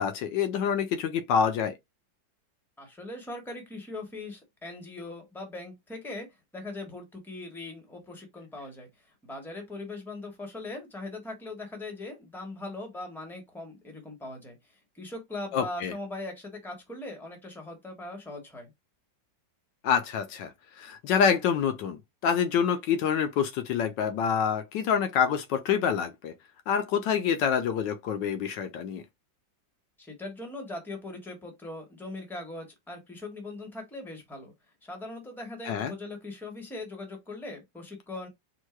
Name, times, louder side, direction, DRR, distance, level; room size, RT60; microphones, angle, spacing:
voice 1, 0.0-1.7 15.5-15.9 19.8-20.5 20.8-26.3 26.7-29.0 35.7-35.9, left 7 dB, 75° left, 1.2 m, -27 dB
voice 2, 2.8-18.7 30.0-34.5 34.8-38.3, left 2 dB, ahead, 1.2 m, -40 dB
4.5 x 2.2 x 4.5 m
omnidirectional pair, 2.0 m